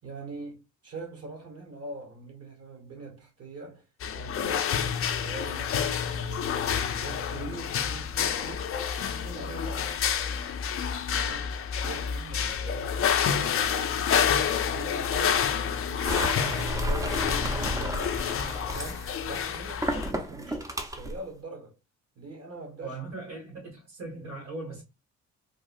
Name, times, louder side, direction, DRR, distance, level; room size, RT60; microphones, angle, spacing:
voice 1, 0.0-3.8 4.1-5.8 6.1-8.7 9.0-9.9 11.1-18.2 18.6-21.7 22.1-23.0, right 3 dB, 50° right, 1.6 m, -43 dB
sound 1, 4.0-20.1, left 8 dB, 45° left, 0.5 m, -28 dB
sound 2, 16.1-21.2, equal, 10° right, 0.6 m, -32 dB
voice 2, 22.8-24.8, right 3 dB, 80° right, 1.8 m, -39 dB
3.5 x 2.3 x 2.5 m
cardioid pair, 90°, 30 cm